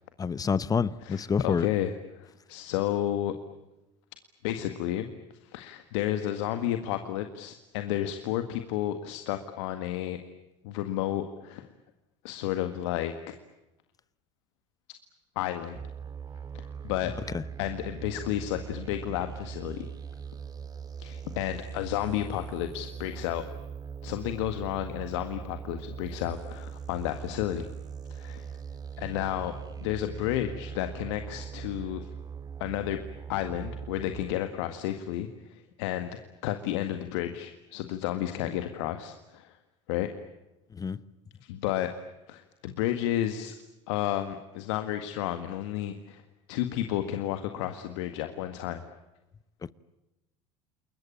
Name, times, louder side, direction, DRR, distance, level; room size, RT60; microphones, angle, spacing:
voice 1, 0.2-1.7 17.3-17.4 40.7-41.0 49.6-49.7, left 6 dB, 25° left, 1.0 m, -28 dB
voice 2, 1.0-3.3 4.4-5.1 5.4-10.2 10.6-11.7 12.2-13.1 15.4-15.8 16.8-17.1 17.6-19.9 21.0-23.4 24.0-27.7 28.1-28.5 29.0-29.5 29.8-32.1 32.6-33.0 33.3-39.5 39.9-40.1 41.4-41.9 42.3-43.5 43.9-46.2 46.5-48.8, left 12 dB, 70° left, 1.8 m, -32 dB
sound 1, 15.7-34.3, right 7 dB, 25° right, 1.9 m, -41 dB
29.0 x 22.0 x 8.7 m
hypercardioid pair, 90°, 15 cm